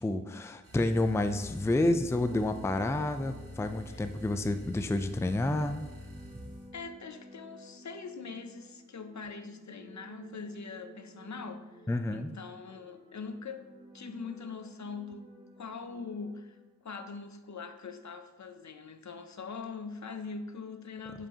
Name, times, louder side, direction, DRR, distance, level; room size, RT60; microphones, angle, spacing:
voice 1, 0.0-5.8 11.9-12.3, left 2 dB, 10° left, 9 dB, 0.4 m, -29 dB
sound 1, 0.6-6.7, left 1 dB, 90° right, 1.5 m, -47 dB
sound 2, 1.3-17.0, right 1 dB, 15° right, 1.0 m, -52 dB
voice 2, 6.7-11.8 12.1-13.7 13.9-15.3 15.6-21.3, left 4 dB, 60° left, 9 dB, 0.6 m, -42 dB
7.6 x 4.9 x 2.9 m, 1.1 s
wide cardioid pair, 50°, 32 cm